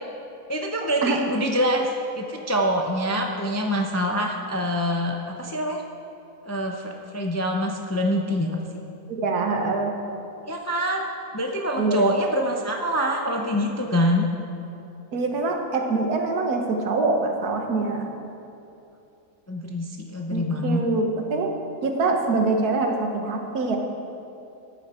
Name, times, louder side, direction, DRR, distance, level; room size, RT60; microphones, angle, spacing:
voice 1, 0.5-1.9 2.2-5.8 6.4-8.6 10.5-11.1 11.3-14.3 19.5-20.8, equal, 20° left, 1 dB, 0.4 m, -25 dB
voice 2, 9.1-9.9 11.8-12.2 15.1-18.1 20.3-21.5 21.8-23.8, right 3 dB, 85° right, 3 dB, 1.7 m, -24 dB
14.0 x 9.8 x 4.4 m, 2.7 s
omnidirectional pair, 1.6 m